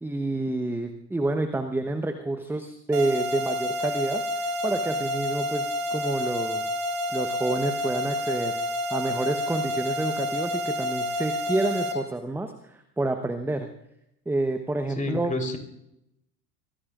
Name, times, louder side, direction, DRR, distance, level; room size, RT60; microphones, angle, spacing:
voice 1, 0.0-4.2 4.6-6.7 7.1-8.6 8.9-13.7 14.3-15.4, right 2 dB, 5° right, 7 dB, 1.0 m, -28 dB
sound 1, 2.9-11.9, left 1 dB, 50° right, 3.1 m, -29 dB
voice 2, 15.0-15.6, left 2 dB, 15° left, 4 dB, 3.6 m, -29 dB
24.0 x 18.0 x 2.5 m, 0.80 s
figure-of-eight pair, 85°, 49 cm